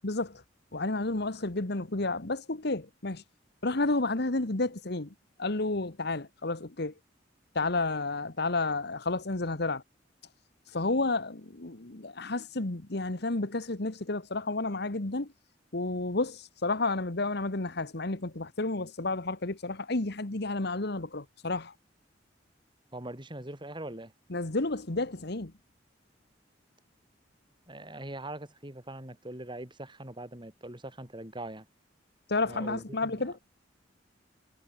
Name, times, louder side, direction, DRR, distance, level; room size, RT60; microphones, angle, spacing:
voice 1, 0.0-0.4 0.7-3.2 3.6-6.9 7.5-9.8 10.7-15.3 15.7-21.7 24.3-25.5 32.3-33.4, left 2 dB, 60° left, 1.6 m, -31 dB
voice 2, 22.9-24.1 27.7-31.7 32.4-33.3, right 1 dB, 25° right, 5.5 m, -42 dB
head